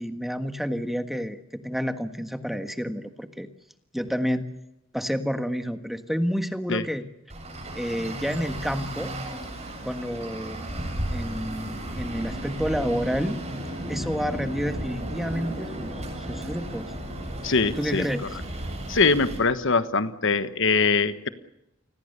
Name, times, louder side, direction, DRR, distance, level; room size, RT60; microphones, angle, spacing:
voice 1, 0.0-3.5 3.9-4.5 4.9-7.0 7.7-9.1 9.8-10.6 11.1-13.4 13.9-15.9 16.2-16.9 17.8-18.2, equal, ahead, 8 dB, 1.5 m, -29 dB
Traffic noise roadway noise, 7.3-19.4, right 1 dB, 35° right, 7.9 m, -34 dB
voice 2, 17.4-18.1 18.9-21.3, left 4 dB, 65° left, 11 dB, 1.3 m, -22 dB
29.0 x 20.5 x 6.8 m, 0.88 s
head